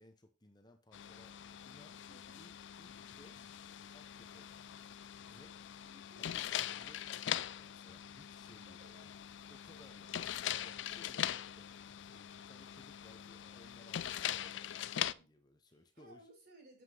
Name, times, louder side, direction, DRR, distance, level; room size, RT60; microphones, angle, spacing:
voice 1, 0.0-2.0 2.4-2.5 2.8-3.5 3.9-4.8 5.3-5.6 6.2-9.1 9.5-16.3, left 1 dB, 20° left, 0.8 m, -62 dB
sound 1, 0.9-15.1, left 10 dB, 75° left, 0.4 m, -42 dB
voice 2, 2.1-2.4 5.8-6.4 8.7-9.1 10.0-10.3 15.1-15.3 15.7-16.8, right 1 dB, 55° right, 6.0 m, -61 dB
7.8 x 5.9 x 4.9 m
head